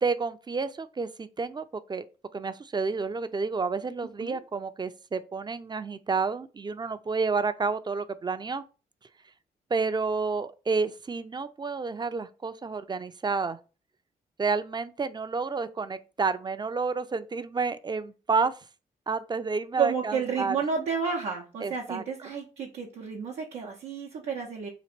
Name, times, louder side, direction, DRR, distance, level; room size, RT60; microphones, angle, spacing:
voice 1, 0.0-2.0 2.3-8.6 9.7-13.6 14.4-18.5 19.1-20.6 21.6-22.0, right 4 dB, 25° right, 0.4 m, -30 dB
voice 2, 19.8-24.7, right 6 dB, 80° right, 0.7 m, -31 dB
3.0 x 2.5 x 4.3 m
supercardioid pair, 45°, 17 cm